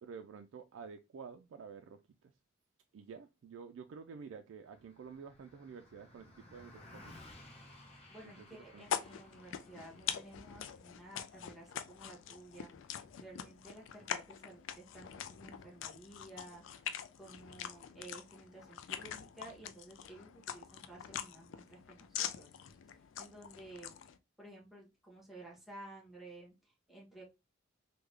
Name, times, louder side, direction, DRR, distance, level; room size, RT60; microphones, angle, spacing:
voice 1, 0.0-2.3 2.9-7.2 8.2-8.9, right 6 dB, 70° right, 0.3 m, -50 dB
Car passing by, 4.6-14.2, left 1 dB, 30° left, 0.8 m, -59 dB
voice 2, 8.1-12.7 13.2-22.5 23.2-23.9 24.4-27.2, right 2 dB, ahead, 1.2 m, -54 dB
sound 1, 8.8-24.2, left 9 dB, 70° left, 0.3 m, -44 dB
3.6 x 2.2 x 3.2 m
head